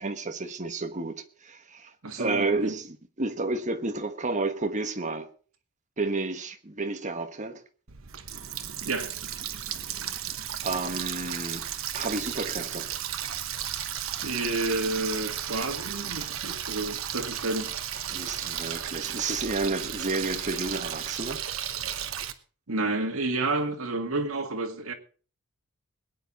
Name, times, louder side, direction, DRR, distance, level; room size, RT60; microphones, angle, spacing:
voice 1, 0.0-5.3 6.0-7.6 10.6-11.7 11.9-12.9 18.1-21.4, right 3 dB, 35° right, 1.3 m, -31 dB
voice 2, 2.0-2.7 8.8-9.1 14.2-17.7 22.7-24.9, right 2 dB, 90° right, 2.0 m, -30 dB
Water tap faucet, 7.9-22.3, right 10 dB, 70° right, 1.1 m, -34 dB
21.5 x 9.6 x 4.1 m
head